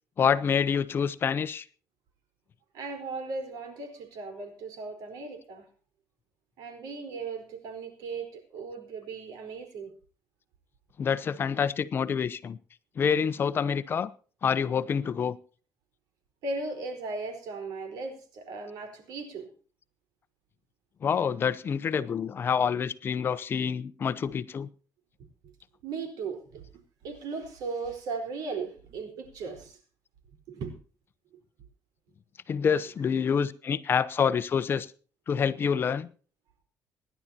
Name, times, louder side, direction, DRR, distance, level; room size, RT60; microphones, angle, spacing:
voice 1, 0.2-1.6 11.0-12.6 13.0-14.1 14.4-15.4 21.0-24.7 32.5-34.9 35.3-36.1, left 7 dB, 35° left, 0.8 m, -27 dB
voice 2, 2.7-5.7 6.6-9.9 16.4-19.5 25.8-26.7 27.0-29.8 30.5-30.8, right 4 dB, 85° right, 4.4 m, -37 dB
25.5 x 11.5 x 2.9 m
cardioid pair, 145°, 6 cm